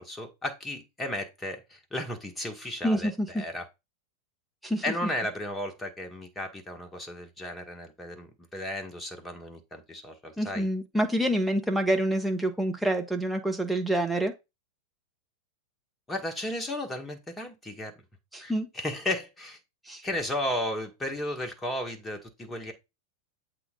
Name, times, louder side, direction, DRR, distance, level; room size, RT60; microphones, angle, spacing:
voice 1, 0.0-3.6 4.8-10.7 16.1-17.9 18.4-19.6 20.0-22.7, left 1 dB, 15° left, 1.6 m, -34 dB
voice 2, 2.8-3.3 4.6-4.8 10.4-14.3 18.3-18.7 19.9-20.0, right 1 dB, ahead, 1.3 m, -27 dB
7.8 x 3.8 x 3.9 m
figure-of-eight pair, 90°, 0 cm